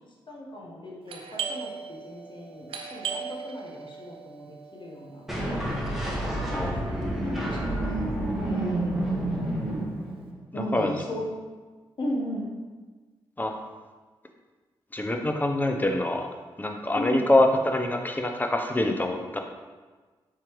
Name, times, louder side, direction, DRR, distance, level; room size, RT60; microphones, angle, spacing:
voice 1, 0.3-5.3 6.3-8.1 8.4-9.2 10.5-11.4 12.0-12.5 17.0-17.2, equal, 50° left, -2 dB, 1.0 m, -36 dB
Doorbell, 1.1-6.5, right 6 dB, 65° right, 0.6 m, -39 dB
sound 1, 5.3-10.4, right 1 dB, 5° right, 1.1 m, -29 dB
voice 2, 14.9-16.3 16.6-19.4, left 1 dB, 20° left, 3 dB, 0.6 m, -25 dB
4.3 x 3.8 x 3.0 m, 1.3 s
supercardioid pair, 50°, 10 cm